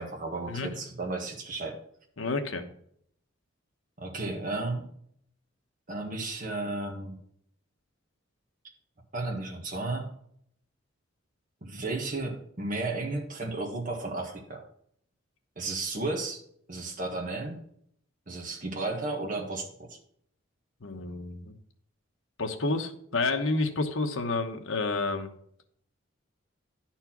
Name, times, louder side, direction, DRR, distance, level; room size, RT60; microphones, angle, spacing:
voice 1, 0.0-1.8 4.0-4.8 5.9-7.2 9.1-10.1 11.6-14.6 15.5-16.4 16.7-17.6 18.3-20.0, right 2 dB, 40° right, 1 dB, 1.6 m, -33 dB
voice 2, 2.2-2.6 20.8-21.6 22.4-25.3, left 3 dB, 80° left, 6 dB, 1.1 m, -30 dB
11.0 x 4.4 x 5.9 m, 0.67 s
head